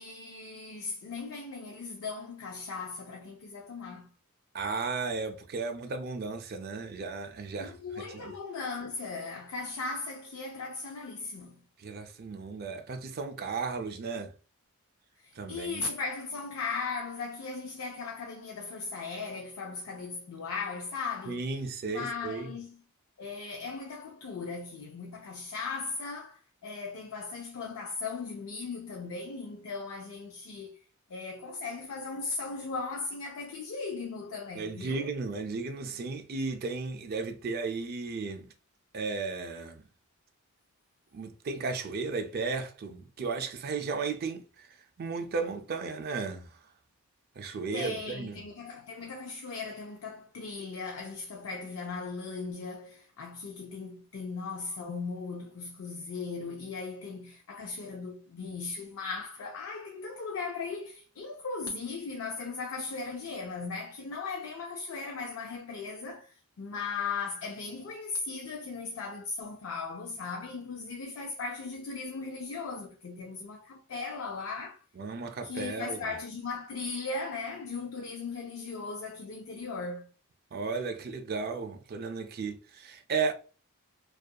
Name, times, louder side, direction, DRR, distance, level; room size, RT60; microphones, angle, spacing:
voice 1, 0.0-4.1 7.6-11.6 15.2-21.5 21.8-22.8 23.2-30.7 31.1-35.1 47.7-74.8 75.4-80.1, left 4 dB, 65° left, 0.4 m, -38 dB
voice 2, 4.5-8.3 11.8-14.3 15.3-15.8 21.3-22.5 34.6-38.5 38.9-39.8 41.1-46.5 47.4-48.4 75.0-76.1 80.5-83.3, right 4 dB, 45° right, 0.4 m, -35 dB
2.7 x 2.3 x 2.2 m
head